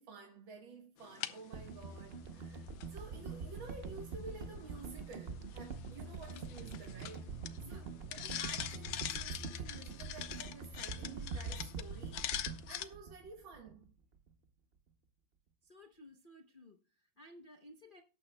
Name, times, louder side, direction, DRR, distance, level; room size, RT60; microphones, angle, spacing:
voice 1, 0.0-7.3 7.6-12.2 12.7-13.9, right 4 dB, 90° right, 2.2 m, -52 dB
sound 1, 1.0-12.9, left 11 dB, 85° left, 1.5 m, -45 dB
sound 2, 1.5-13.8 14.2-14.3, right 4 dB, 50° right, 0.7 m, -45 dB
voice 2, 7.6-7.9 15.6-18.0, left 1 dB, 45° left, 0.7 m, -57 dB
18.0 x 8.8 x 2.2 m
omnidirectional pair, 2.1 m